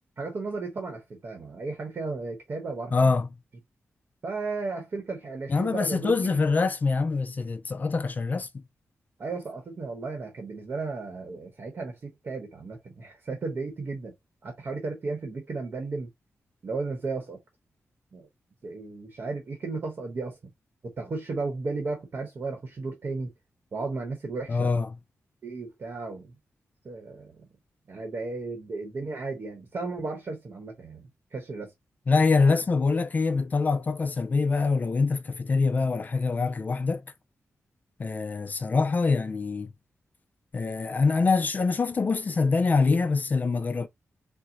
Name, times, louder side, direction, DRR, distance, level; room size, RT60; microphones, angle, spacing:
voice 1, 0.2-3.1 4.2-6.4 9.2-14.1 14.4-16.1 16.6-17.4 18.1-18.3 18.6-20.5 20.8-23.3 23.7-24.7 25.4-26.3 26.8-27.5 27.9-31.7, right 3 dB, 45° right, 1.0 m, -34 dB
voice 2, 2.9-3.3 5.5-8.5 24.5-24.9 32.1-37.0 38.0-39.7 40.5-43.9, left 4 dB, 35° left, 0.4 m, -24 dB
4.4 x 2.1 x 3.8 m
wide cardioid pair, 160°, 5 cm